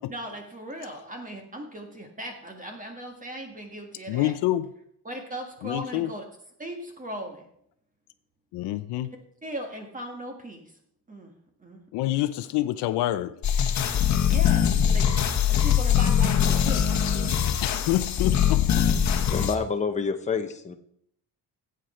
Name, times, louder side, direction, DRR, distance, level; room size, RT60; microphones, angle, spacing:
voice 1, 0.1-4.3 5.1-6.2 6.6-7.5 9.4-10.7 11.1-11.3 11.6-12.2 14.3-16.9, right 1 dB, 20° right, 1.7 m, -38 dB
voice 2, 4.1-4.7 5.6-6.1 8.5-9.1 11.9-13.4 17.6-18.9, left 14 dB, 85° left, 0.7 m, -27 dB
sound 1, 13.4-19.5, left 9 dB, 45° left, 1.3 m, -22 dB
voice 3, 19.3-20.8, left 5 dB, 20° left, 1.0 m, -28 dB
16.5 x 8.0 x 4.4 m
cardioid pair, 140°, 39 cm